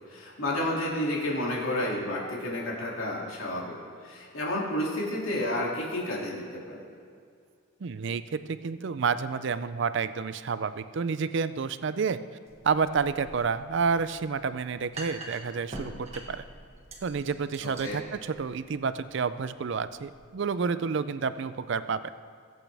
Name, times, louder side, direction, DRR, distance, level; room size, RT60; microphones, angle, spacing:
voice 1, 0.1-3.8 4.0-6.8 17.6-18.0, left 1 dB, 80° left, -4 dB, 2.6 m, -31 dB
voice 2, 7.8-12.2 12.6-16.4 17.0-22.0, right 5 dB, 55° right, 13 dB, 0.4 m, -29 dB
sound 1, 12.5-20.2, right 1 dB, 30° right, 1.5 m, -45 dB
20.0 x 8.5 x 3.4 m, 2.3 s
head